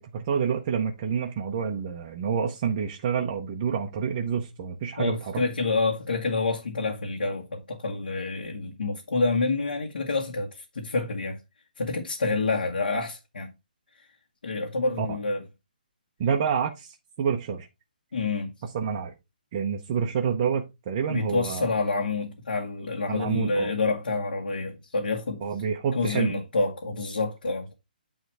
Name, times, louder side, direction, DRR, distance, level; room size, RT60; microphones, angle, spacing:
voice 1, 0.0-5.4 15.0-15.2 16.2-17.7 18.6-19.1 19.5-21.7 23.1-23.7 25.4-26.3, right 7 dB, 20° right, 0.5 m, -28 dB
voice 2, 5.0-11.4 11.8-13.5 14.4-15.4 18.1-18.5 21.1-25.4 25.9-27.7, left 3 dB, 80° left, 1.8 m, -28 dB
9.3 x 3.1 x 4.7 m
hypercardioid pair, 175°, 5 cm